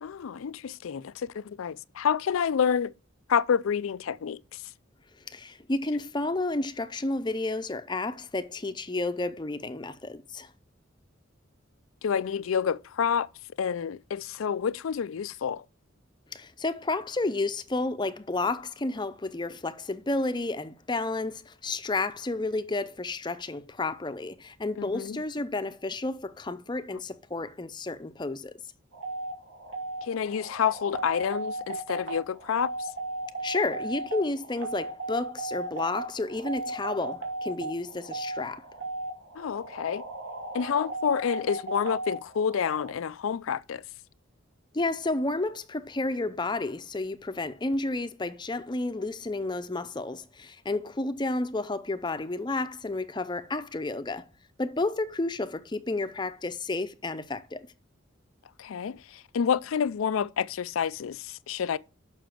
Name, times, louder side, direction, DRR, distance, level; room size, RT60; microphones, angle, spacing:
voice 1, 0.0-2.9 3.3-4.6 12.0-13.3 13.6-15.6 24.8-25.2 30.0-32.7 39.4-40.0 40.5-43.8 58.6-61.8, left 7 dB, 90° left, 0.4 m, -28 dB
voice 2, 5.3-10.5 16.3-28.6 33.4-38.7 44.7-54.2 54.6-57.7, left 2 dB, 20° left, 0.6 m, -31 dB
sound 1, 28.9-42.9, right 2 dB, 85° right, 2.6 m, -36 dB
6.9 x 6.1 x 7.5 m
head